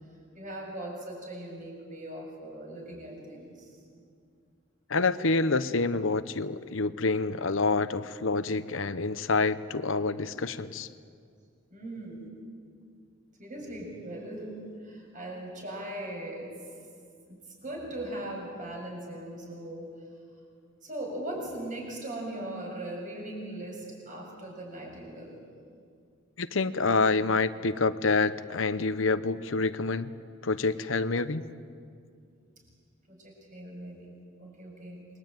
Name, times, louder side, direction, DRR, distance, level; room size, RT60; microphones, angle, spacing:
voice 1, 0.3-3.8 11.7-12.4 13.4-16.5 17.3-19.9 20.8-25.4 33.1-35.0, right 1 dB, 40° right, 0 dB, 7.6 m, -39 dB
voice 2, 4.9-10.9 26.4-30.1 30.4-31.4, left 3 dB, 75° left, 12 dB, 1.0 m, -27 dB
28.0 x 22.5 x 9.2 m, 2.3 s
head